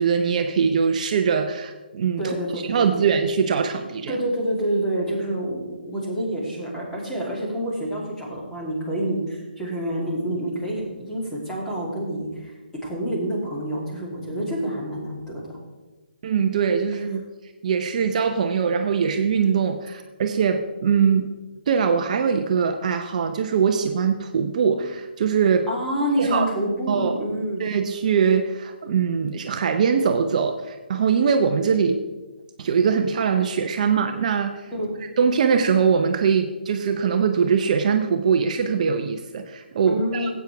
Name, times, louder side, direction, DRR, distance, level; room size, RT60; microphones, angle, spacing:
voice 1, 0.0-4.2 16.2-17.2 17.6-21.3 21.7-25.7 26.2-26.5 26.9-27.2 27.6-32.0 32.6-34.7 35.2-40.3, right 6 dB, 45° right, 6 dB, 0.7 m, -22 dB
voice 2, 2.2-3.1 4.1-12.5 12.8-15.6 25.7-27.6 34.7-34.9 39.9-40.3, right 1 dB, 10° left, -5 dB, 2.9 m, -27 dB
15.0 x 8.3 x 3.4 m, 1.2 s
figure-of-eight pair, 145°, 5 cm